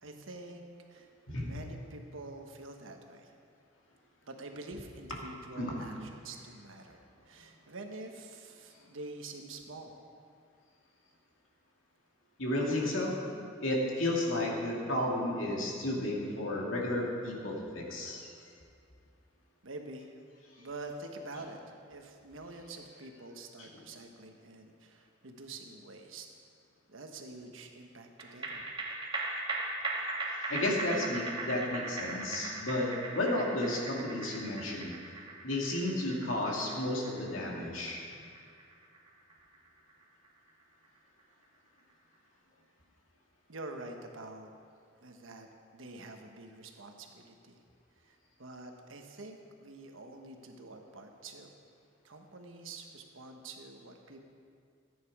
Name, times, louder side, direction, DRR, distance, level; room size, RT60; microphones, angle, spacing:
voice 1, 0.0-3.3 4.2-10.0 19.6-20.2 20.6-26.3 26.9-28.7 43.5-44.5 45.0-47.6 48.0-51.5 52.0-54.2, right 2 dB, 80° right, 4 dB, 1.2 m, -47 dB
voice 2, 12.4-13.1 13.6-18.3 23.6-23.8 30.3-34.9 35.4-38.0, left 1 dB, 85° left, -2 dB, 2.4 m, -32 dB
sound 1, 28.2-40.8 41.2-41.3, right 2 dB, 25° right, 1.9 m, -39 dB
14.5 x 9.4 x 4.8 m, 2.3 s
head